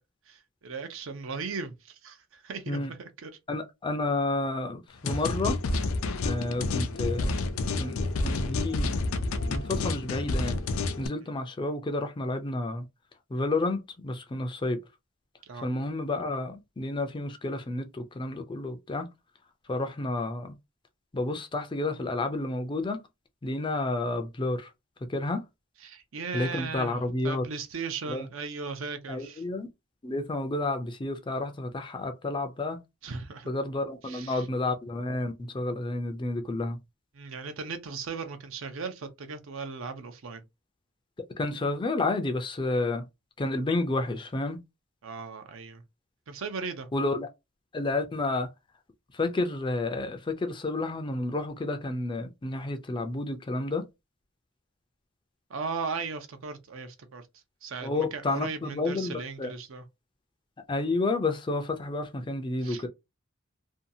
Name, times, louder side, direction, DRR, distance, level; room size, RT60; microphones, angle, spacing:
voice 1, 0.3-3.3 15.5-15.7 25.8-29.4 33.0-33.5 34.0-34.5 37.1-40.4 45.0-45.8 46.3-46.9 55.5-57.2 57.6-59.8 62.6-62.8, right 5 dB, 70° right, 0.6 m, -37 dB
voice 2, 3.5-5.6 6.2-7.4 7.8-9.0 9.5-10.6 11.0-12.8 13.3-13.8 14.0-14.8 15.6-19.1 19.7-20.6 21.1-23.0 23.4-24.7 25.1-25.4 26.3-27.4 28.1-28.3 29.1-29.7 30.0-32.8 33.5-36.8 41.4-43.0 43.4-44.6 46.9-47.3 47.7-48.5 49.1-53.8 57.8-59.1 59.4-59.5 60.7-62.9, left 2 dB, 25° left, 0.4 m, -30 dB
sound 1, 5.1-11.1, left 2 dB, 90° left, 0.5 m, -29 dB
2.7 x 2.3 x 2.6 m
head